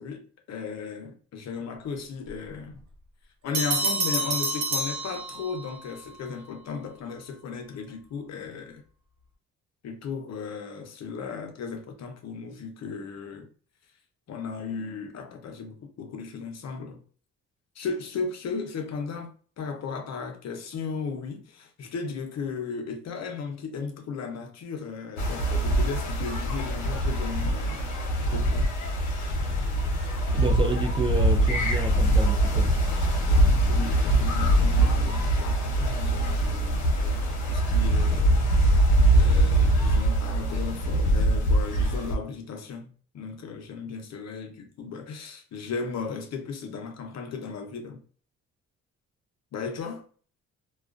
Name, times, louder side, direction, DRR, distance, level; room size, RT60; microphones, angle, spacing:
voice 1, 0.0-2.8 3.4-8.8 9.8-13.5 14.3-17.0 17.7-28.8 33.7-38.5 39.1-48.0 49.5-50.0, left 5 dB, 60° left, 0.7 m, -36 dB
Bell, 3.5-5.8, right 2 dB, 80° right, 0.8 m, -28 dB
sound 1, 25.2-42.2, right 1 dB, 90° left, 0.8 m, -23 dB
voice 2, 30.3-32.8, right 2 dB, 15° right, 0.4 m, -29 dB
2.3 x 2.2 x 2.4 m
cardioid pair, 90°, 30 cm